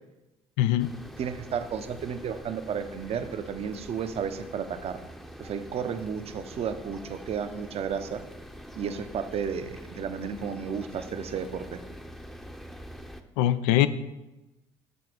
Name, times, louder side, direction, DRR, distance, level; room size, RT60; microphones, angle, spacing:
voice 1, 0.6-0.9 13.4-13.9, left 13 dB, 80° left, 0.4 m, -22 dB
sound 1, 0.8-13.2, equal, ahead, 0.7 m, -45 dB
voice 2, 1.2-5.0 5.4-8.2 8.8-11.8, right 7 dB, 50° right, 0.7 m, -33 dB
6.9 x 4.1 x 6.1 m
hypercardioid pair, 60°, 13 cm